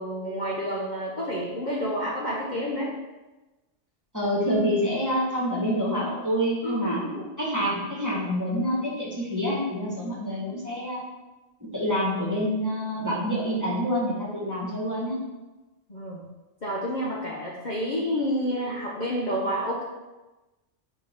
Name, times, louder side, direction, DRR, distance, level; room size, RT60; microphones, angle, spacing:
voice 1, 0.0-3.0 6.6-7.3 15.9-16.3 16.6-19.8, equal, 40° left, -5 dB, 1.0 m, -29 dB
voice 2, 4.1-7.0 7.4-11.0 11.7-15.2, equal, 15° right, -5 dB, 1.5 m, -27 dB
6.6 x 4.6 x 3.7 m, 1.1 s
omnidirectional pair, 1.3 m